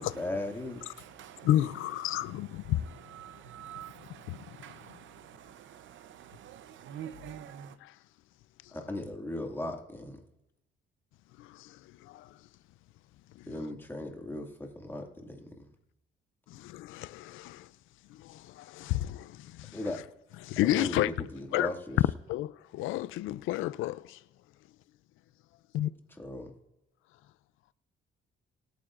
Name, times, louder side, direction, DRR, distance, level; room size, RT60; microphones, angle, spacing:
voice 1, 0.0-0.9 8.7-10.2 13.5-15.7 19.7-20.0 20.6-22.0 26.2-26.5, left 1 dB, 10° left, 2.1 m, -37 dB
voice 2, 0.9-1.5 2.6-7.8, right 10 dB, 75° right, 0.7 m, -47 dB
voice 3, 1.4-2.8 4.3-4.4 7.8-7.9 11.4-12.3 13.4-13.5 16.5-17.7 18.1-19.8 20.4-21.3 21.5-21.7 22.3-24.2 25.7-25.9, left 14 dB, 85° left, 0.4 m, -31 dB
25.0 x 9.2 x 2.5 m
cardioid pair, 90°, 20 cm